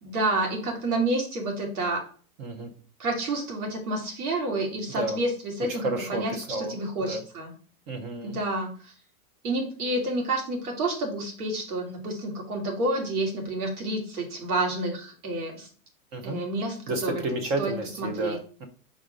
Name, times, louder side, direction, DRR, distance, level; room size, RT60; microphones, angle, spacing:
voice 1, 0.0-2.1 3.0-6.3 6.6-7.5 8.2-8.9 9.4-15.7 16.2-17.2 17.6-17.7 18.0-18.4, right 2 dB, 80° right, 1 dB, 2.6 m, -29 dB
voice 2, 2.4-2.7 4.9-5.2 5.7-6.7 7.0-7.2 7.9-8.4 16.1-16.4 16.9-18.6, right 2 dB, 15° right, 5 dB, 0.4 m, -31 dB
5.1 x 3.6 x 5.1 m, 0.42 s
hypercardioid pair, 145°, 43 cm